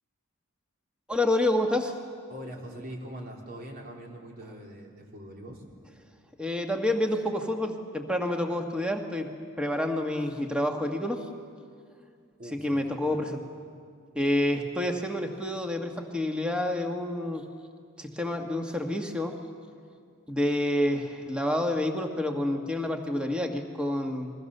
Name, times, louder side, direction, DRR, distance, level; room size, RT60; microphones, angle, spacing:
voice 1, 1.1-2.0 6.4-9.3 9.6-11.3 12.5-13.4 14.1-17.4 18.0-19.4 20.3-24.3, left 1 dB, 5° right, 3 dB, 1.7 m, -28 dB
voice 2, 2.3-5.6 12.4-13.2, equal, 45° right, 0 dB, 3.6 m, -42 dB
30.0 x 22.5 x 6.8 m, 2.2 s
head